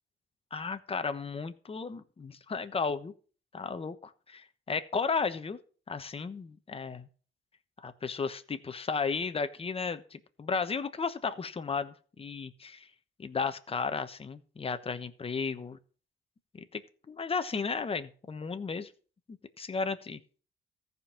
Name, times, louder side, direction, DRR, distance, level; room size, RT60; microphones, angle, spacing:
voice 1, 0.5-3.1 3.5-5.6 5.9-7.1 7.8-12.9 13.2-15.8 16.5-16.8 17.1-18.9 19.3-20.2, left 5 dB, 30° left, 10 dB, 1.1 m, -34 dB
14.5 x 5.4 x 7.3 m, 0.41 s
cardioid pair, 90°, 20 cm